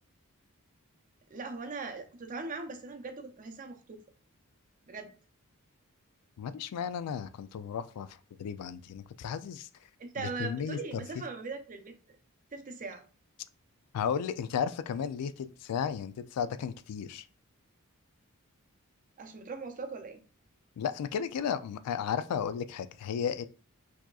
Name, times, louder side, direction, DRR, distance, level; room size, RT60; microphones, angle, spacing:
voice 1, 1.3-4.0 4.9-5.1 10.0-12.2 12.5-13.0 19.2-20.2, right 4 dB, 35° right, 5 dB, 0.5 m, -40 dB
voice 2, 6.4-9.7 10.2-10.8 13.9-17.2 20.8-23.5, left 7 dB, 85° left, 12 dB, 0.3 m, -34 dB
4.5 x 2.9 x 2.3 m, 0.38 s
head